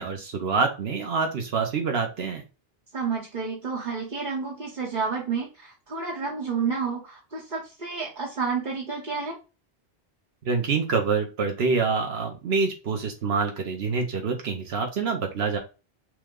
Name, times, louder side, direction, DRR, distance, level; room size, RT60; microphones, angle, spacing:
voice 1, 0.0-2.4 10.4-15.6, right 4 dB, 75° right, 4 dB, 1.0 m, -26 dB
voice 2, 2.9-9.4, right 5 dB, 50° right, -3 dB, 1.2 m, -30 dB
6.0 x 2.2 x 3.6 m, 0.31 s
omnidirectional pair, 1.1 m